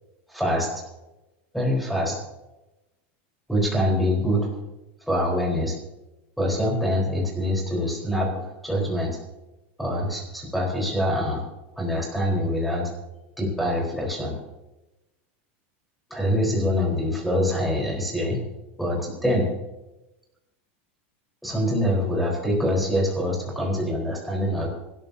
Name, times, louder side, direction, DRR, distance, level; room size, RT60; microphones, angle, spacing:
voice 1, 0.3-0.8 1.5-2.2 3.5-4.5 5.1-5.7 6.4-9.2 9.8-11.4 11.8-12.9 13.4-14.4 16.1-18.4 18.8-19.5 21.4-24.7, equal, ahead, -3 dB, 4.2 m, -25 dB
25.0 x 13.0 x 2.8 m, 1.0 s
supercardioid pair, 165°, 7 cm